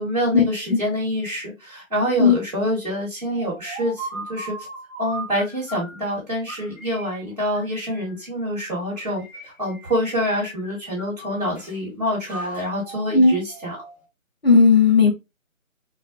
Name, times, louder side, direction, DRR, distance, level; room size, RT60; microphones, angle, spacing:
voice 1, 0.0-4.5 5.0-13.8, equal, 30° right, -6 dB, 1.4 m, -26 dB
sound 1, 3.3-6.0 6.5-8.3 8.9-10.1 10.3-11.8 12.3-14.1, right 2 dB, 25° left, 1.4 m, -38 dB
voice 2, 14.4-15.1, left 4 dB, 45° left, 0 dB, 0.7 m, -14 dB
3.1 x 2.5 x 2.7 m, 0.23 s
figure-of-eight pair, 175°, 41 cm